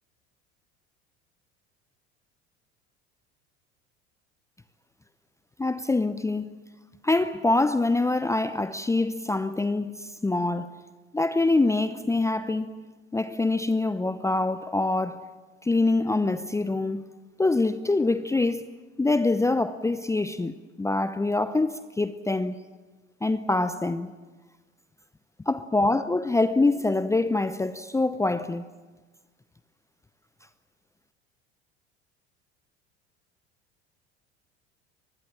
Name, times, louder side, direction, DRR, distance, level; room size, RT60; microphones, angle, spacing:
voice 1, 5.6-6.5 7.0-10.7 11.1-12.7 13.1-15.2 15.6-17.0 17.4-18.7 19.0-22.6 23.2-24.1 25.5-28.7, left 2 dB, 10° left, 0.7 m, -25 dB
24.5 x 20.5 x 7.3 m
figure-of-eight pair, 70°, 33 cm